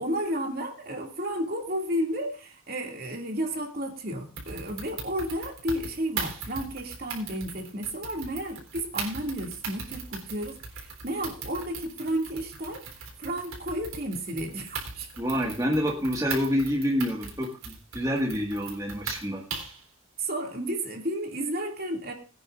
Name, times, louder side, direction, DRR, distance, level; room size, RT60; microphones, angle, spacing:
voice 1, 0.0-15.1 20.2-22.1, right 1 dB, 45° right, 2 dB, 2.5 m, -32 dB
sound 1, 4.4-19.8, right 5 dB, 80° right, 3.8 m, -39 dB
voice 2, 15.2-19.4, equal, 15° right, -1 dB, 1.9 m, -27 dB
22.0 x 9.4 x 2.6 m, 0.34 s
head